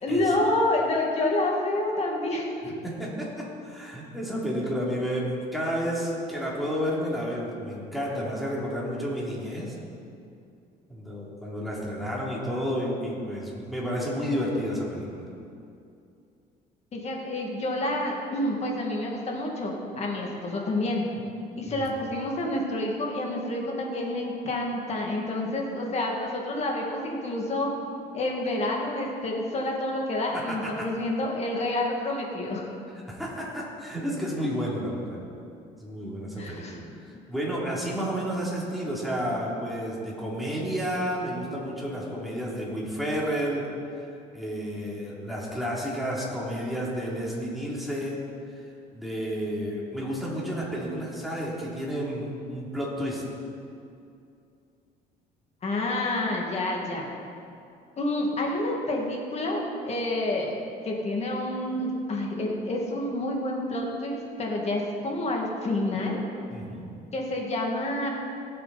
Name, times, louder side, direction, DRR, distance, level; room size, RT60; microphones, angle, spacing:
voice 1, 0.0-2.5 16.9-21.1 21.6-27.7 28.1-32.7 36.4-36.8 55.6-57.1 58.0-60.5 60.8-66.2 67.1-68.1, left 1 dB, 40° left, -1 dB, 2.4 m, -28 dB
voice 2, 2.6-9.8 10.9-15.3 21.7-21.9 30.3-30.9 33.1-35.2 35.8-36.8 37.1-43.7 43.9-48.3 48.9-53.3 66.5-66.9, equal, ahead, -6 dB, 3.3 m, -31 dB
18.0 x 7.9 x 4.3 m, 2.5 s
cardioid pair, 110°, 17 cm